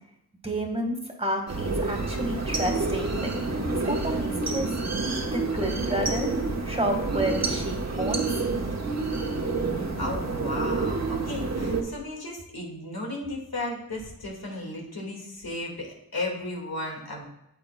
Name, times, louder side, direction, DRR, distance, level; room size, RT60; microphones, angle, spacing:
voice 1, 0.4-3.3 3.9-4.7 5.3-6.3 6.6-8.4, right 1 dB, 15° right, 2 dB, 1.6 m, -30 dB
sound 1, 1.5-11.8, right 3 dB, 45° right, 1.1 m, -28 dB
voice 2, 9.3-17.2, left 2 dB, 75° left, -1 dB, 2.0 m, -35 dB
8.7 x 7.4 x 2.2 m, 0.81 s
cardioid pair, 40°, 36 cm